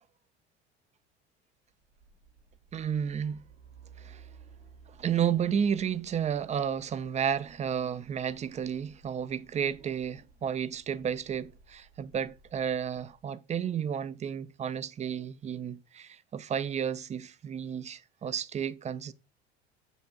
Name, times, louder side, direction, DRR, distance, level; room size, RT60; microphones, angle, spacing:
Truck, 1.8-13.2, right 5 dB, 80° right, 2.2 m, -57 dB
voice 1, 2.7-3.4 4.0-4.2 4.9-19.1, right 8 dB, 20° right, 0.5 m, -32 dB
8.1 x 6.7 x 2.4 m
figure-of-eight pair, 70°, 33 cm